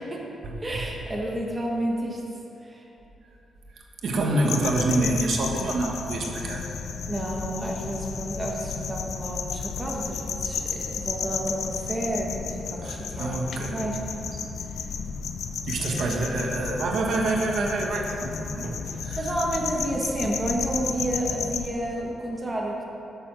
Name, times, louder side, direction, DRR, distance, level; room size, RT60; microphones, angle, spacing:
voice 1, 0.6-2.2 2.6-2.8 4.5-4.6 7.1-14.4 15.8-16.2 18.9-22.8, right 1 dB, 15° right, -2 dB, 1.2 m, -31 dB
voice 2, 4.0-6.7 12.8-13.8 15.7-18.8 19.0-19.2, right 2 dB, 60° right, 0 dB, 1.3 m, -26 dB
sound 1, 4.4-21.7, left 6 dB, 65° left, 0.6 m, -33 dB
11.0 x 6.8 x 6.1 m, 3.0 s
wide cardioid pair, 155°, 0 cm